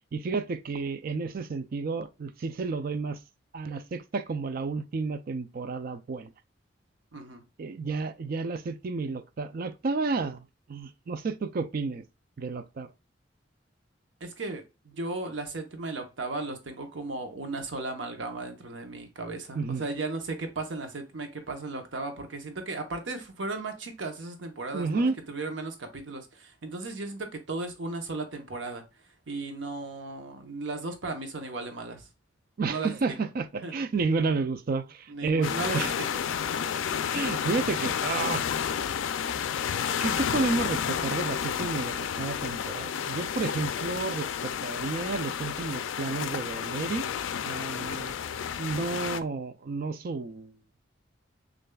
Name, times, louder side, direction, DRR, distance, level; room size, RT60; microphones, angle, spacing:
voice 1, 0.1-3.2 3.5-6.3 7.6-12.0 12.4-12.9 19.5-19.8 24.7-25.2 32.6-35.9 37.1-38.4 40.0-47.1 47.4-48.2 48.6-50.6, right 4 dB, 50° right, 0.4 m, -31 dB
voice 2, 7.1-7.4 14.2-28.8 29.3-32.1 32.7-33.2 33.6-33.8 35.1-36.2 48.2-48.5, right 3 dB, 75° right, 0.9 m, -36 dB
sound 1, 35.4-49.2, left 8 dB, 90° left, 0.4 m, -31 dB
6.5 x 2.5 x 2.3 m
head